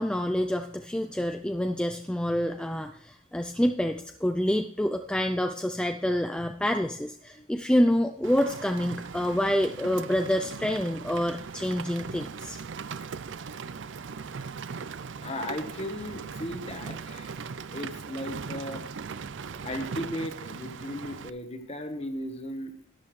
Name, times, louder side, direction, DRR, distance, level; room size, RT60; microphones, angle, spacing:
voice 1, 0.0-12.6, equal, 5° left, 6 dB, 0.4 m, -27 dB
Rain, 8.2-21.3, right 5 dB, 60° right, 0.5 m, -39 dB
voice 2, 15.2-17.3 17.7-18.9 19.6-22.7, left 1 dB, 30° left, 7 dB, 1.2 m, -36 dB
12.5 x 10.5 x 3.2 m, 0.66 s
head